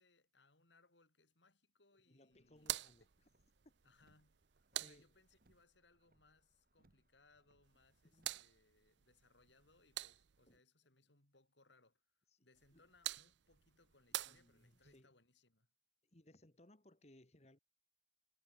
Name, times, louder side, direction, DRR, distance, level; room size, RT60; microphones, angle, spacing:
voice 1, 0.0-2.8 3.8-4.4 4.7-15.7, left 3 dB, 80° left, 5.1 m, -72 dB
voice 2, 2.1-3.1 4.8-5.1 8.0-8.3 10.5-10.6 12.3-12.5 12.7-12.8 14.1-15.1 16.0-17.6, left 1 dB, 35° left, 1.8 m, -65 dB
Car, 2.3-8.6, right 1 dB, 50° right, 2.3 m, -77 dB
sound 1, 2.6-5.6 7.6-10.6 12.5-15.0, right 14 dB, 80° right, 0.6 m, -48 dB
head